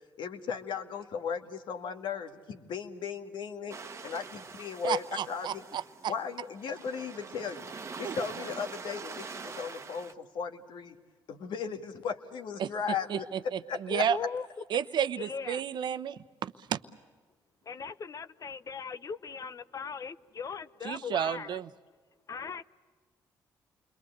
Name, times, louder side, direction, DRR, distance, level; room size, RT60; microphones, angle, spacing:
voice 1, 0.2-5.7 6.1-11.0 11.3-13.3 13.7-14.1, left 6 dB, 70° left, 1.9 m, -36 dB
sound 1, 3.7-10.1, right 4 dB, 35° right, 1.2 m, -44 dB
voice 2, 4.8-6.1 8.0-8.1 12.6-12.7 13.1-14.2 14.7-16.8 20.8-21.7, right 9 dB, 65° right, 0.9 m, -32 dB
voice 3, 13.9-14.5 15.2-15.6 17.6-21.6 22.3-22.6, left 6 dB, 45° left, 0.7 m, -39 dB
29.0 x 22.0 x 8.1 m
cardioid pair, 80°, 8 cm